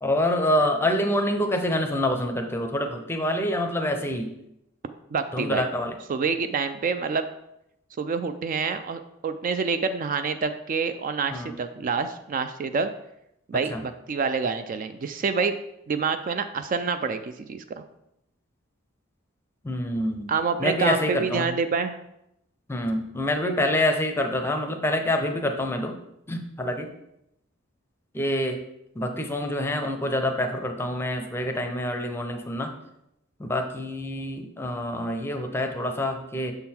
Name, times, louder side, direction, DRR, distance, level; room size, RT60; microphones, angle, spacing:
voice 1, 0.0-4.3 5.3-6.0 11.3-11.5 13.7-13.8 19.6-20.3 20.6-21.5 22.7-26.0 26.3-26.9 28.1-28.6 29.0-32.7 33.4-36.5, left 1 dB, 10° left, 5 dB, 0.6 m, -26 dB
voice 2, 5.1-5.7 6.1-7.2 8.0-12.9 13.5-15.6 15.9-17.8 20.3-22.0, right 5 dB, 40° right, 10 dB, 0.3 m, -27 dB
6.8 x 3.8 x 4.3 m, 0.82 s
head